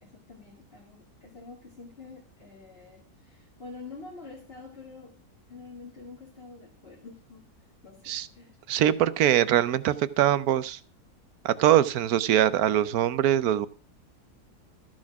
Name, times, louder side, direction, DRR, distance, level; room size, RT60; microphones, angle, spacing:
voice 1, 0.0-5.2 5.5-7.5 7.8-8.6 11.7-12.0, left 4 dB, 40° left, -3 dB, 2.4 m, -47 dB
voice 2, 8.7-10.8 11.4-13.7, right 11 dB, 75° right, 15 dB, 1.2 m, -23 dB
13.5 x 6.5 x 5.9 m, 0.37 s
omnidirectional pair, 1.7 m